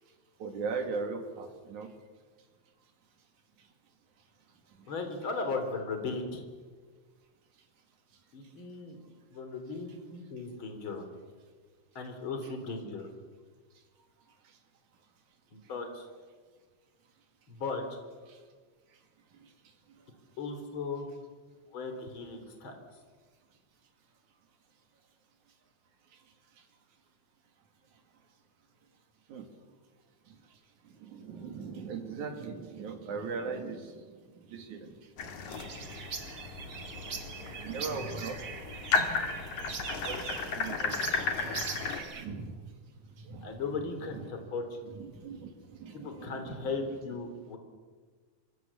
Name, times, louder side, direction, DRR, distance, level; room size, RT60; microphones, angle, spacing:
voice 1, 0.4-1.9 12.4-12.5 29.3-29.5 31.0-34.1 34.5-34.9 37.5-38.4 38.7-38.8 40.0-41.0 41.3-41.7 42.2-42.6 43.2-44.5 44.8-46.9, right 4 dB, 85° right, 5 dB, 3.8 m, -39 dB
voice 2, 4.9-6.4 8.3-9.0 9.3-11.1 12.0-13.1 15.5-16.1 17.5-18.0 20.4-21.1 21.7-22.8 43.4-44.9 46.0-47.6, left 4 dB, 45° left, 6 dB, 3.9 m, -37 dB
sound 1, 35.2-42.0, left 4 dB, 80° left, 3.6 m, -34 dB
sound 2, 35.5-42.3, right 5 dB, 40° right, 2.2 m, -41 dB
26.5 x 23.5 x 7.1 m, 1.4 s
omnidirectional pair, 3.3 m